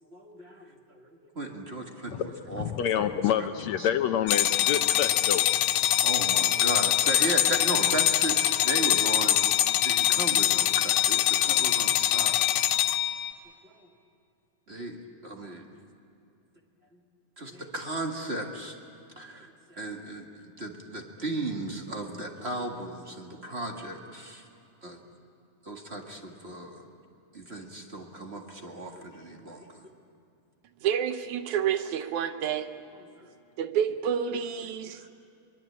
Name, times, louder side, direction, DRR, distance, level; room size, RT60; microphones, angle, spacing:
voice 1, 0.0-2.7 3.0-3.1 3.4-3.5 3.8-3.9 5.8-9.5 9.8-12.6 13.6-13.9 14.7-15.7 16.9-17.0 17.4-18.8 19.1-24.5 24.8-25.0 25.6-26.8 27.3-29.9 32.9-33.3 34.9-35.1, right 1 dB, 25° right, 2 dB, 1.5 m, -36 dB
voice 2, 2.6-5.5, left 9 dB, 70° left, 9 dB, 1.9 m, -27 dB
sound 1, 4.3-13.3, left 12 dB, 90° left, 2.3 m, -24 dB
voice 3, 30.8-32.7 33.6-35.0, right 8 dB, 75° right, 9 dB, 2.2 m, -29 dB
23.5 x 23.5 x 8.6 m, 2.5 s
omnidirectional pair, 3.5 m